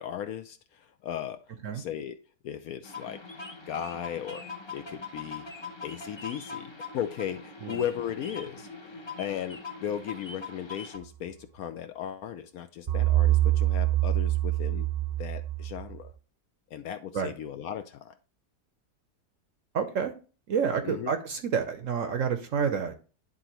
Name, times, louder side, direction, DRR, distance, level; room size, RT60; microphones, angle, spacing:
voice 1, 0.0-1.4 1.7-3.2 3.7-4.5 4.7-5.5 5.8-8.7 9.2-14.9 15.2-16.1 16.7-18.1 20.8-21.1, left 9 dB, 70° left, 0.9 m, -36 dB
sound 1, 2.8-11.0, left 4 dB, 30° left, 0.5 m, -42 dB
sound 2, 12.9-16.0, right 15 dB, 45° right, 0.5 m, -25 dB
voice 2, 19.7-20.1 20.5-22.9, right 6 dB, 60° right, 0.9 m, -29 dB
11.0 x 3.8 x 2.9 m
omnidirectional pair, 1.8 m